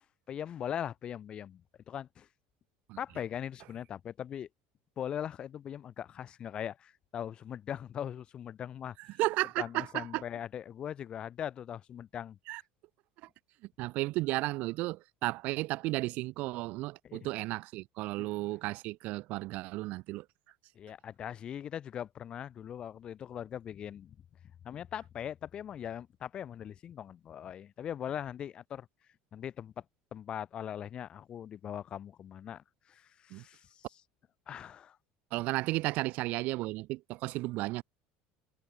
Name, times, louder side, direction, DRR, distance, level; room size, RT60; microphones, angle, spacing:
voice 1, 0.3-2.3 3.0-4.5 5.0-9.0 9.6-12.4 17.0-17.3 18.2-18.3 20.7-24.2 24.6-28.9 29.3-29.8 30.1-33.9 34.5-35.0, left 9 dB, 25° left, 1.3 m, -40 dB
voice 2, 9.2-10.2 12.5-12.6 13.8-20.3 33.3-33.4 35.3-37.8, right 20 dB, 45° right, 0.5 m, -33 dB
cardioid pair, 180°, 4 cm